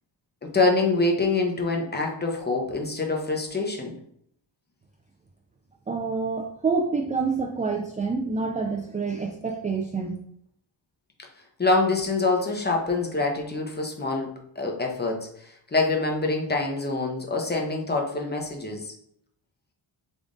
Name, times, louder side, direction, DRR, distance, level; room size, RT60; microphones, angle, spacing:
voice 1, 0.4-3.9 11.6-14.3 14.6-18.9, left 3 dB, 20° left, 1 dB, 0.7 m, -25 dB
voice 2, 5.9-10.2, right 4 dB, 20° right, 2 dB, 0.3 m, -27 dB
3.6 x 2.5 x 3.7 m, 0.69 s
cardioid pair, 75°, 47 cm